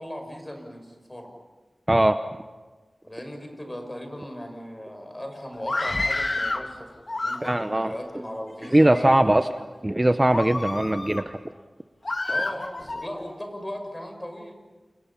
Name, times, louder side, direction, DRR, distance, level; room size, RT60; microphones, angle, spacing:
voice 1, 0.0-1.4 3.0-9.3 12.3-14.5, equal, 20° left, 4 dB, 6.3 m, -37 dB
voice 2, 1.9-2.2 7.4-7.9 8.7-9.5 9.8-11.4, right 1 dB, 25° right, 9 dB, 0.9 m, -20 dB
Screaming, 5.6-6.7 7.1-7.8 8.5-9.1 9.6-9.8 10.3-11.3 12.0-13.1, left 2 dB, 50° left, 1.8 m, -29 dB
29.0 x 28.5 x 5.8 m, 1.3 s
wide cardioid pair, 60°, 0 cm